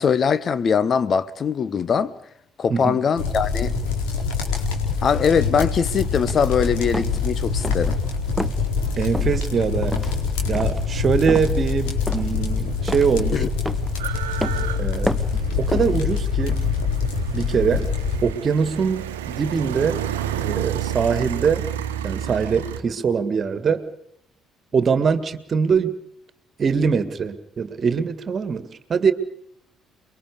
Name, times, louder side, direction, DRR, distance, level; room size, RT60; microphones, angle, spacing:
voice 1, 0.0-2.1 2.6-3.7 5.0-8.0 13.3-13.5, left 6 dB, 40° left, 1.0 m, -21 dB
voice 2, 2.7-3.0 9.0-9.9 10.5-13.4 14.8-15.1 15.6-16.6 17.3-17.9 18.2-20.0 20.4-21.7 22.0-23.9 24.7-25.9 26.6-29.1, right 6 dB, 40° right, 1.9 m, -22 dB
sound 1, 3.2-18.2, left 5 dB, 70° left, 4.3 m, -25 dB
sound 2, 6.9-7.2 7.6-8.0 8.4-8.6 9.1-9.4 9.8-10.1 10.5-10.8 11.3-11.5 12.1-12.4 12.9-13.2 13.6-13.9 14.4-14.7 15.1-15.4 15.7-16.0, equal, ahead, 1.1 m, -29 dB
sound 3, 12.1-12.2 12.4-22.8, right 10 dB, 75° right, 1.1 m, -31 dB
29.0 x 22.5 x 5.1 m
figure-of-eight pair, 45°, 0 cm